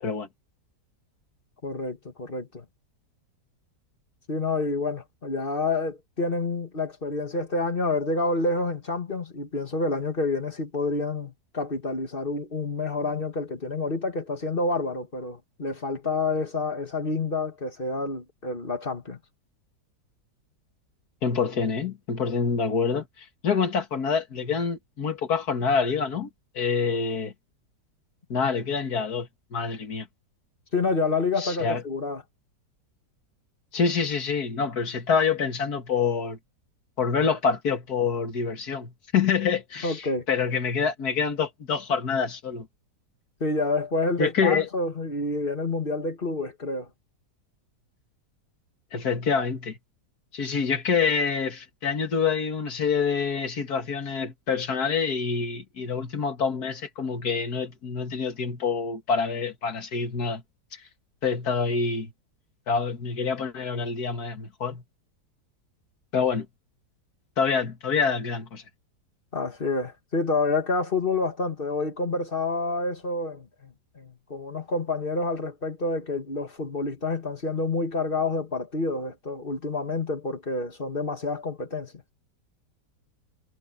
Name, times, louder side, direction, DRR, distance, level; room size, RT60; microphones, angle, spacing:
voice 1, 1.6-2.7 4.3-19.2 30.7-32.2 39.8-40.3 43.4-46.9 69.3-82.0, left 3 dB, 30° left, 2.0 m, -28 dB
voice 2, 21.2-26.3 26.5-27.3 28.3-30.1 31.4-31.8 33.7-36.4 37.0-42.7 44.2-44.7 48.9-49.8 50.3-60.4 60.7-60.8 61.2-62.1 62.7-64.8 66.1-66.5 67.4-68.6, left 5 dB, 65° left, 2.4 m, -26 dB
omnidirectional pair, 1.8 m